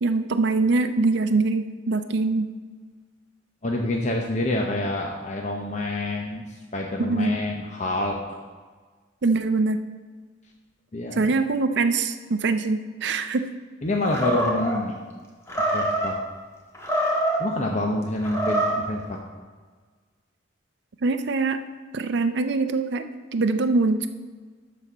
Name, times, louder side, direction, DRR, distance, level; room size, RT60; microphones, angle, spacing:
voice 1, 0.0-2.5 7.0-7.4 9.2-9.8 11.1-13.5 21.0-21.6 21.9-23.1 23.3-24.1, right 3 dB, 60° right, 8 dB, 0.5 m, -23 dB
voice 2, 3.6-6.4 6.7-8.4 10.9-11.3 13.8-15.0 15.7-16.2 17.4-19.2, left 1 dB, 40° left, 0 dB, 0.8 m, -27 dB
Animal, 14.1-14.8 15.5-16.1 16.7-17.5 18.2-18.9, right 1 dB, 15° left, 1.4 m, -25 dB
12.5 x 4.2 x 6.1 m, 1.5 s
head